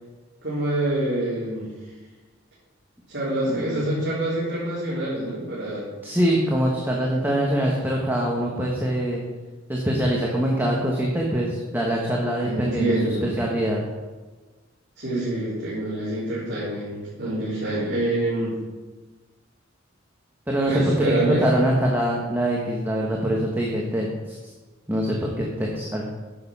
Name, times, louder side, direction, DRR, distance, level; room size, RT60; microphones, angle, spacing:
voice 1, 0.4-1.7 3.1-5.9 12.4-13.3 15.0-18.6 20.7-21.5, right 2 dB, 55° right, -10 dB, 3.8 m, -26 dB
voice 2, 3.5-3.8 6.0-9.2 9.7-13.8 20.5-24.4 24.9-26.0, equal, 10° right, -3 dB, 1.2 m, -24 dB
10.5 x 6.7 x 5.5 m, 1.3 s
head